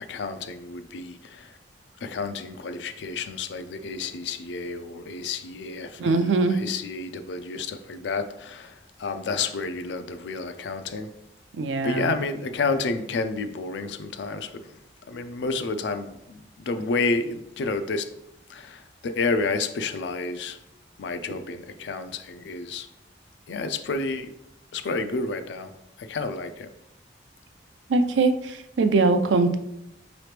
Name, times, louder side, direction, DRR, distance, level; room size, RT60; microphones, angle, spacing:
voice 1, 0.1-1.5 2.0-11.1 11.8-14.7 15.1-18.1 18.5-20.6 21.0-22.9 23.5-24.3 24.7-25.7 26.0-26.7, left 3 dB, 75° left, 9 dB, 0.4 m, -30 dB
voice 2, 6.0-6.6 11.5-12.1 27.9-29.6, right 3 dB, 85° right, 8 dB, 0.4 m, -22 dB
4.9 x 3.0 x 3.2 m, 0.83 s
head